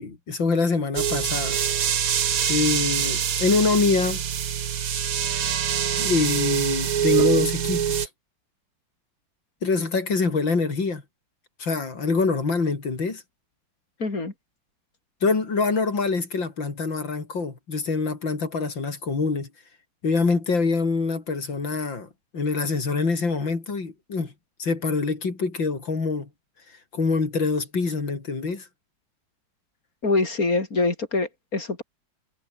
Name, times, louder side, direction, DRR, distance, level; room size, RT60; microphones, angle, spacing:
voice 1, 0.0-1.6 2.5-4.2 6.0-8.1 9.6-11.0 11.6-13.2 15.2-19.5 20.0-24.3 24.6-26.3 26.9-28.7, left 4 dB, 85° left, 4.6 m, -25 dB
sound 1, 0.9-8.1, right 8 dB, 55° right, 1.5 m, -24 dB
voice 2, 14.0-14.3 30.0-31.8, left 3 dB, 50° left, 4.6 m, -24 dB
omnidirectional pair, 2.0 m